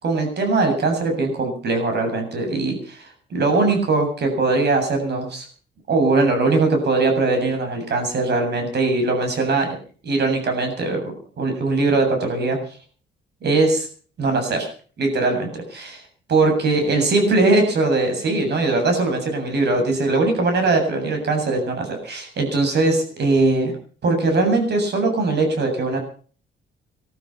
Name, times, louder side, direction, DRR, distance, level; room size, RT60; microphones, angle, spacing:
voice 1, 0.0-5.4 5.9-9.8 10.0-12.6 13.4-13.9 14.2-14.7 15.0-16.0 16.3-23.7 24.0-26.0, right 3 dB, 60° right, 5 dB, 7.7 m, -20 dB
19.5 x 12.5 x 5.9 m, 0.43 s
cardioid pair, 90°, 20 cm